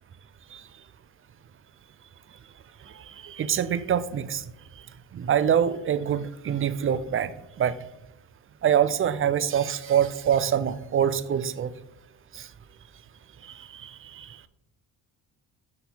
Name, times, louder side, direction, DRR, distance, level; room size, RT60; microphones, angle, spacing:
voice 1, 3.1-4.4 5.1-7.3 7.6-7.7 8.6-11.7 12.3-12.5 13.6-14.4, right 9 dB, 35° right, 14 dB, 0.4 m, -25 dB
5.8 x 4.3 x 3.9 m, 0.87 s
cardioid pair, 85°, 42 cm